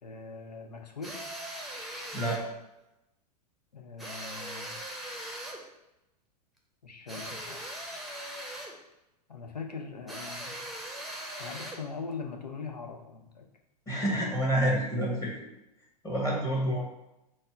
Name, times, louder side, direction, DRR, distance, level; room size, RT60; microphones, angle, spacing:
voice 1, 0.0-1.1 3.7-4.8 6.8-7.6 9.3-10.6 11.4-13.4, left 5 dB, 90° left, 2 dB, 0.7 m, -41 dB
sound 1, 1.0-2.5 4.0-5.7 7.1-8.8 10.1-11.9, right 1 dB, ahead, 0.7 m, -40 dB
voice 2, 13.9-15.3 16.0-16.9, right 1 dB, 15° left, -4 dB, 1.1 m, -28 dB
4.2 x 2.1 x 4.4 m, 0.92 s
hypercardioid pair, 105°, 21 cm